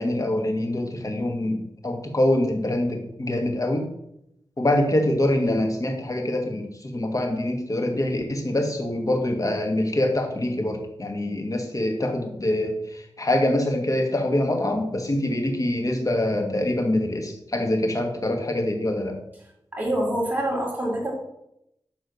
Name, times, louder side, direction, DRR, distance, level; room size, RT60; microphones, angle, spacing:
voice 1, 0.0-3.9 4.6-19.2, left 1 dB, 40° left, 2 dB, 2.3 m, -25 dB
voice 2, 19.7-21.1, right 1 dB, 20° right, -2 dB, 4.1 m, -25 dB
12.0 x 4.3 x 7.1 m, 0.80 s
wide cardioid pair, 75°, 9 cm